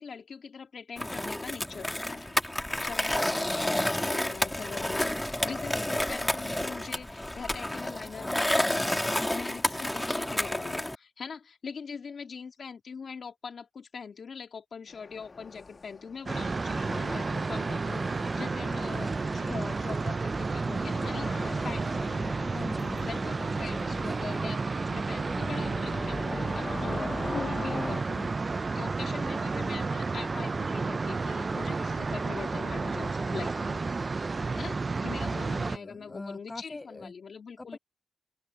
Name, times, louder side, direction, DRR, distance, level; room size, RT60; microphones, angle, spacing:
voice 1, 0.0-2.4 2.8-8.9 9.3-22.1 23.0-33.8 34.5-37.8, left 5 dB, 70° left, 2.9 m, -42 dB
Skateboard, 1.0-11.0, left 1 dB, 10° left, 2.4 m, -30 dB
sound 1, 14.9-28.0, left 3 dB, 45° left, 1.7 m, -42 dB
sound 2, 16.3-35.8, right 4 dB, 45° right, 0.3 m, -31 dB
voice 2, 22.5-23.2 23.5-24.1 35.2-37.1 37.6-37.8, left 2 dB, 30° left, 5.4 m, -42 dB
open air
cardioid pair, 60°, 0 cm